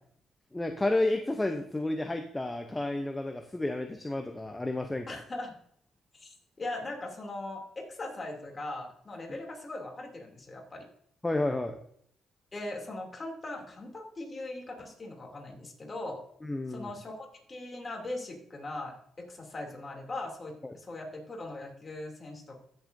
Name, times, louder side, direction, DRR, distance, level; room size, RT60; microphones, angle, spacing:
voice 1, 0.5-5.2 11.2-11.8 16.4-16.9 20.6-20.7, left 2 dB, 15° left, 6 dB, 0.7 m, -31 dB
voice 2, 5.1-5.5 6.1-10.9 12.5-16.2 16.7-22.6, left 2 dB, 30° left, 1 dB, 2.8 m, -40 dB
15.0 x 7.2 x 2.7 m, 0.66 s
cardioid pair, 90°, 0 cm